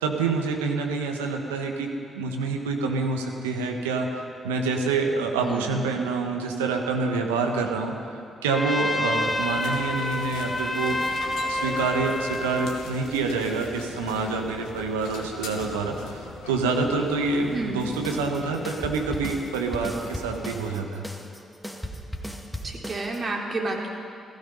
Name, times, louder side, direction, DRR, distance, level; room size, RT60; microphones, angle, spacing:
voice 1, 0.0-8.0 8.4-11.1 11.5-21.1, right 4 dB, 85° right, 3 dB, 1.3 m, -27 dB
voice 2, 5.4-5.8 17.5-17.8 22.6-23.9, right 2 dB, 45° right, -1 dB, 3.1 m, -30 dB
Trumpet, 8.5-12.8, left 1 dB, 20° left, 2.2 m, -28 dB
sound 1, 9.1-20.8, left 4 dB, 70° left, 1.7 m, -41 dB
sound 2, 17.8-23.2, equal, ahead, 2.0 m, -36 dB
16.0 x 15.0 x 5.5 m, 2.5 s
hypercardioid pair, 40°, 0 cm